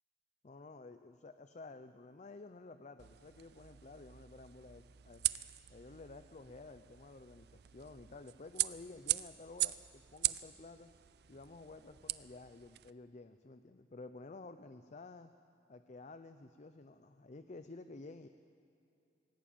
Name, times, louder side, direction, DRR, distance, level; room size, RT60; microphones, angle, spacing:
voice 1, 0.4-5.3 5.7-10.9 11.3-15.3 15.7-18.3, left 3 dB, 40° left, 10 dB, 0.6 m, -52 dB
sound 1, 3.0-12.9, right 16 dB, 65° right, 0.5 m, -41 dB
19.0 x 18.0 x 8.7 m, 2.6 s
head